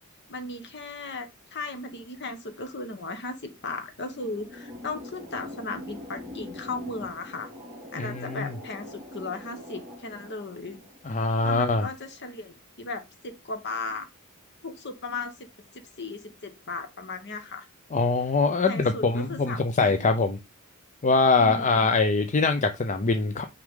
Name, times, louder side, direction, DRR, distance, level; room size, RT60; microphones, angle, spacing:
voice 1, 0.3-7.5 7.9-10.8 11.1-14.0 14.6-15.3 15.7-17.7 18.7-20.1 21.4-21.9, left 3 dB, 50° left, 1.3 m, -36 dB
sound 1, 3.6-12.1, left 1 dB, 5° right, 3.8 m, -43 dB
voice 2, 8.0-8.5 11.1-11.9 17.9-20.4 21.0-23.4, left 3 dB, 35° left, 0.5 m, -23 dB
6.1 x 4.8 x 3.7 m
head